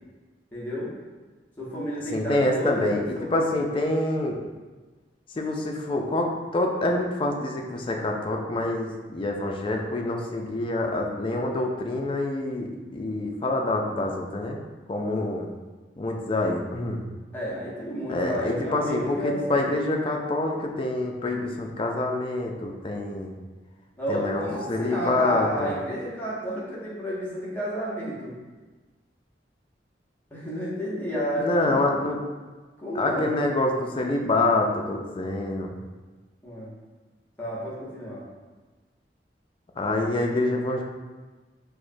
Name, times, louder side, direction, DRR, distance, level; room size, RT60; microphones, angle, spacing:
voice 1, 0.5-0.9 1.6-3.5 17.3-19.7 24.0-28.4 30.3-31.8 32.8-33.3 36.4-36.7 37.4-38.3, equal, 10° left, -7 dB, 0.8 m, -31 dB
voice 2, 2.1-4.4 5.4-14.6 14.9-15.5 16.0-17.0 18.1-23.4 24.1-24.4 24.7-25.7 31.4-32.2 32.9-35.7 39.8-40.8, left 2 dB, 30° left, 1 dB, 0.3 m, -26 dB
4.7 x 2.1 x 2.6 m, 1.3 s
head